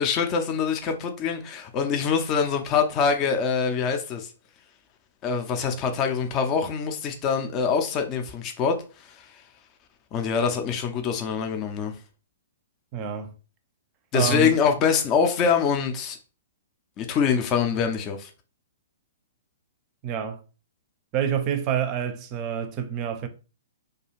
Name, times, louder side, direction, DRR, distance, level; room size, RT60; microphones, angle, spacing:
voice 1, 0.0-4.3 5.2-9.4 10.1-12.0 14.1-16.2 17.0-18.3, left 6 dB, 30° left, 0.4 m, -24 dB
voice 2, 12.9-13.3 14.1-14.5 20.0-20.4 21.1-23.3, right 9 dB, 35° right, 0.5 m, -27 dB
2.4 x 2.3 x 3.0 m
hypercardioid pair, 120°, 0 cm